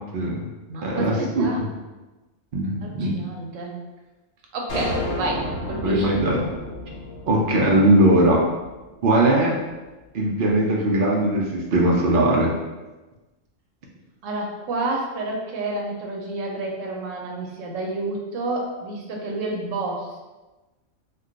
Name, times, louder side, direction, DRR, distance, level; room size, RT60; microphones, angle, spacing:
voice 1, 0.1-0.4 0.8-1.7 2.5-3.2 5.8-6.4 7.3-8.5 9.0-9.6 10.1-12.5, right 1 dB, 60° right, -2 dB, 0.5 m, -20 dB
voice 2, 0.7-1.6 2.8-3.8 4.5-6.1 14.2-20.2, right 2 dB, 85° right, 0 dB, 1.0 m, -29 dB
sound 1, 4.7-9.1, left 1 dB, 60° left, 0.7 m, -32 dB
2.4 x 2.2 x 3.7 m, 1.1 s
omnidirectional pair, 1.3 m